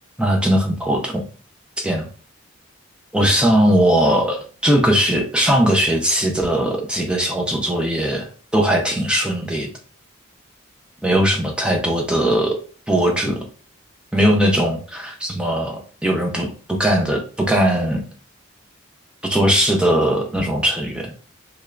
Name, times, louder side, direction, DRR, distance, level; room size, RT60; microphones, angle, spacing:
voice 1, 0.2-1.2 1.8-2.1 3.1-9.7 11.0-12.6 12.9-13.4 14.1-18.0 19.2-21.1, equal, 5° right, 1 dB, 0.5 m, -19 dB
3.5 x 3.2 x 2.4 m, 0.40 s
head